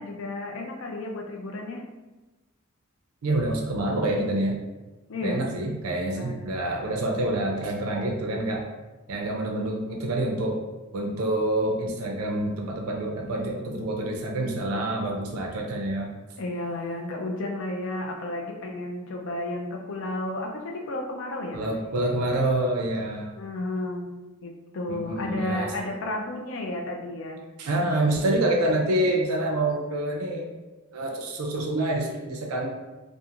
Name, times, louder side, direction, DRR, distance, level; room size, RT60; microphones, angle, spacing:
voice 1, 0.0-1.8 5.1-5.4 6.1-6.5 16.4-22.1 23.4-27.4 28.2-28.3, left 2 dB, 60° left, 2 dB, 0.4 m, -32 dB
voice 2, 3.2-4.6 5.2-8.6 9.1-10.6 10.9-16.1 21.5-23.3 24.9-25.7 27.6-30.5 30.9-32.7, right 1 dB, 85° right, 1 dB, 0.4 m, -27 dB
2.4 x 2.4 x 2.8 m, 1.1 s
head